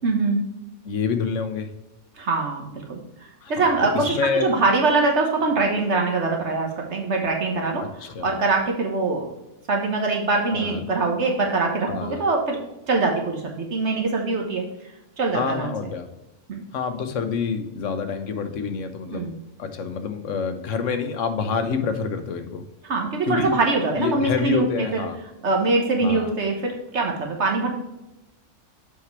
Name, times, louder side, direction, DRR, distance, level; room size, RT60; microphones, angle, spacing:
voice 1, 0.0-0.4 2.2-3.0 3.5-7.8 8.2-9.3 9.7-12.6 12.9-14.6 15.2-15.7 16.5-16.7 19.1-19.3 22.8-24.7 24.9-25.0 25.4-27.7, right 3 dB, 65° right, 1 dB, 1.3 m, -23 dB
voice 2, 0.8-1.7 3.4-4.5 7.8-8.3 10.5-10.8 11.9-12.2 15.3-16.1 16.7-19.3 19.6-22.6 23.2-23.5 23.9-25.2 26.0-26.3, left 5 dB, 80° left, 7 dB, 1.2 m, -27 dB
7.0 x 4.7 x 4.6 m, 0.95 s
omnidirectional pair, 1.3 m